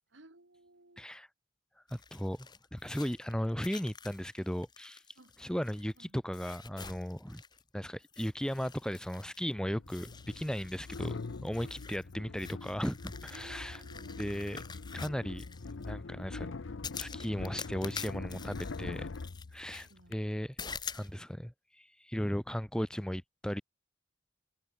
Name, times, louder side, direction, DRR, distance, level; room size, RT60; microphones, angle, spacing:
voice 1, 0.1-1.1 5.2-5.3 6.0-6.2 11.6-11.7 13.3-14.4 19.8-20.2, right 2 dB, 80° right, 2.5 m, -57 dB
voice 2, 1.0-1.3 1.9-5.0 5.4-7.4 7.7-13.8 14.2-14.6 14.9-15.4 15.8-16.5 17.0-19.1 19.5-20.5 20.9-23.6, equal, 5° left, 1.0 m, -36 dB
sound 1, 1.9-6.0 6.3-7.7 8.0-9.5 9.9-15.9 16.8-19.9 20.6-21.1, left 6 dB, 20° left, 1.9 m, -47 dB
sound 2, 9.5-20.2, left 3 dB, 85° left, 0.7 m, -43 dB
head